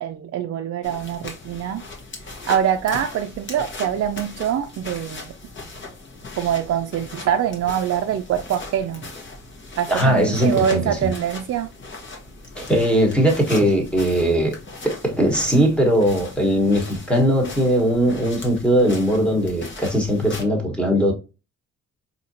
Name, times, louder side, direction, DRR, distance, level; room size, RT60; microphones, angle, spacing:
voice 1, 0.0-1.8 2.5-5.3 6.4-9.1 9.8-11.7, right 9 dB, 55° right, 0.5 m, -24 dB
sound 1, 0.8-20.4, left 3 dB, 40° left, 1.2 m, -38 dB
voice 2, 9.9-11.1 12.6-14.5 14.8-21.1, equal, 5° left, 1.3 m, -19 dB
4.1 x 2.8 x 2.7 m
cardioid pair, 90°, 30 cm